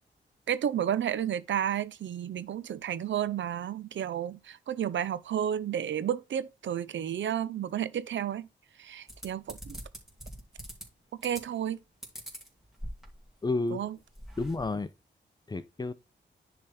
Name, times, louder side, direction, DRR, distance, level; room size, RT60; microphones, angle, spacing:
voice 1, 0.5-8.5 8.8-9.8 11.2-11.8 13.7-14.0, right 9 dB, 85° right, 0.6 m, -32 dB
sound 1, 9.1-10.8 11.2-11.7 12.0-13.3 13.7-13.8 14.0-14.6, equal, ahead, 2.7 m, -43 dB
voice 2, 13.4-13.8 14.4-14.9 15.5-15.9, left 3 dB, 20° left, 0.7 m, -30 dB
10.0 x 3.6 x 4.3 m
wide cardioid pair, 115°, 19 cm